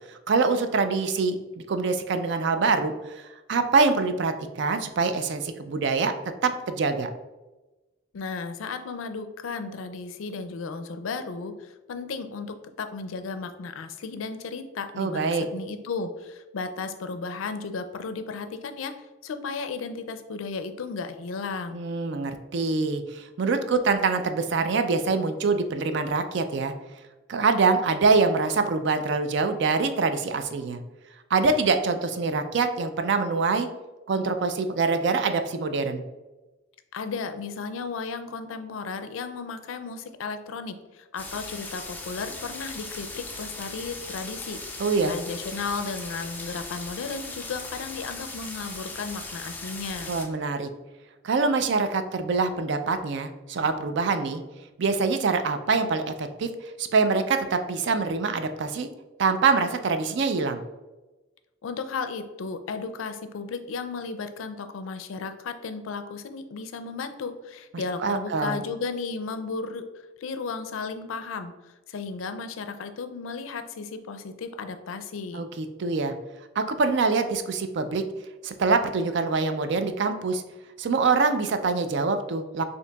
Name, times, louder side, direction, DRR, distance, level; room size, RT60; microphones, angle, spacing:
voice 1, 0.1-6.1 6.4-7.1 15.0-15.4 21.7-26.7 27.3-30.8 31.3-33.7 34.1-36.0 44.8-45.1 50.1-50.7 51.2-54.4 54.8-56.5 56.8-58.9 59.2-60.6 67.7-68.6 75.3-76.1 76.6-78.0 78.4-80.4 80.8-82.6, right 4 dB, 60° right, 8 dB, 0.4 m, -25 dB
voice 2, 8.1-18.9 19.2-21.8 36.9-50.1 61.6-69.8 70.2-71.5 71.9-75.5, left 4 dB, 80° left, 9 dB, 0.4 m, -34 dB
sound 1, 41.2-50.3, left 2 dB, 10° left, 0.4 m, -38 dB
6.4 x 2.7 x 2.2 m, 1.1 s
head